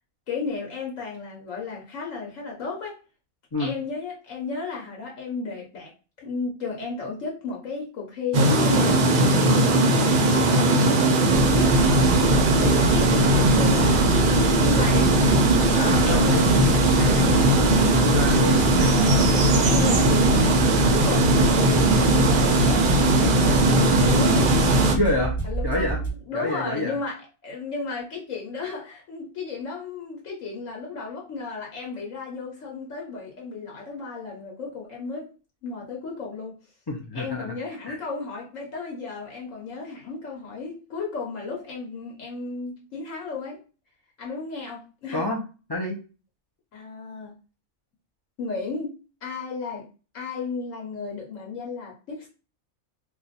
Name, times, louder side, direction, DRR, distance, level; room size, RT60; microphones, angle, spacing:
voice 1, 0.3-3.0 3.6-5.9 6.2-9.0 10.0-11.0 11.5-12.1 12.5-15.2 15.7-18.1 18.8-19.3 19.6-20.6 20.8-21.6 21.9-24.6 25.4-35.3 35.6-36.6 37.1-43.6 44.2-45.3 46.7-47.4 48.4-48.9 49.2-49.9 50.1-52.3, left 4 dB, 65° left, -1 dB, 1.2 m, -34 dB
sound 1, 8.3-24.9, right 2 dB, 55° right, 0.6 m, -19 dB
sound 2, 11.3-26.1, right 3 dB, 5° left, 1.2 m, -29 dB
voice 2, 15.7-16.4 18.1-18.7 24.9-25.4 25.6-26.0 26.3-27.0 36.9-37.5 37.9-38.0 45.1-45.4 45.7-46.0, left 2 dB, 35° left, -1 dB, 0.4 m, -27 dB
2.4 x 2.4 x 4.0 m, 0.33 s
omnidirectional pair, 1.5 m